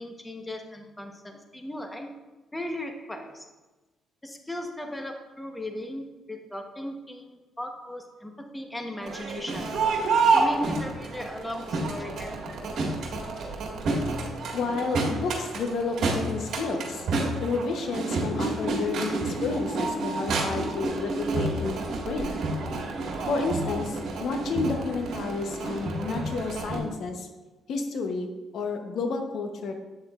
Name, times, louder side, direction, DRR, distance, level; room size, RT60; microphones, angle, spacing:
voice 1, 0.0-2.1 2.5-3.5 4.2-9.8 10.3-12.3, left 1 dB, 10° left, 3 dB, 1.0 m, -37 dB
Crowd, 9.0-26.8, right 3 dB, 70° right, 1.8 m, -29 dB
voice 2, 14.5-17.1 17.4-21.8 22.1-22.3 23.3-27.3 27.7-28.3 28.5-29.7, left 4 dB, 70° left, 5 dB, 0.9 m, -31 dB
8.5 x 7.4 x 2.4 m, 1.2 s
cardioid pair, 90°, 0 cm